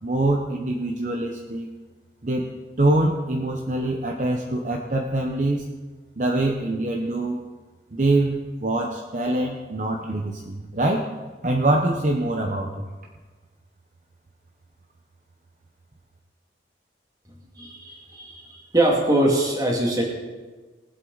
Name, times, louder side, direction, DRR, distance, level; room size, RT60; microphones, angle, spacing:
voice 1, 0.0-1.7 2.2-2.5 2.8-5.7 6.2-7.4 7.9-11.1 11.4-12.9, right 2 dB, 45° right, 1 dB, 0.9 m, -24 dB
voice 2, 17.6-20.0, right 1 dB, 20° right, -1 dB, 2.2 m, -22 dB
19.5 x 8.1 x 4.0 m, 1.3 s
head